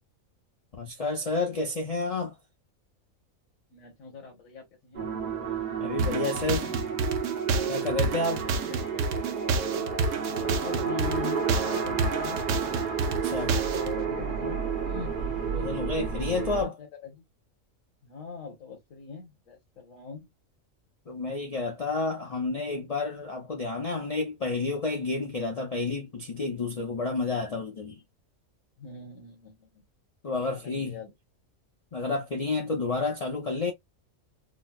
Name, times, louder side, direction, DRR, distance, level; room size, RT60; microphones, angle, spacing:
voice 1, 0.8-2.4 5.8-6.7 7.7-8.5 13.1-13.6 15.5-16.8 21.1-28.0 30.2-31.0 31.9-33.7, left 3 dB, 45° left, 0.5 m, -30 dB
voice 2, 3.7-5.1 8.4-9.0 10.3-12.4 13.7-15.1 15.5-15.7 16.2-17.2 18.0-20.3 28.8-29.8 30.4-31.1, left 5 dB, 70° left, 1.5 m, -42 dB
sound 1, 4.9-16.6, right 6 dB, 45° right, 0.9 m, -31 dB
sound 2, 6.0-13.9, right 3 dB, 70° right, 0.9 m, -29 dB
3.8 x 2.0 x 2.2 m
omnidirectional pair, 1.4 m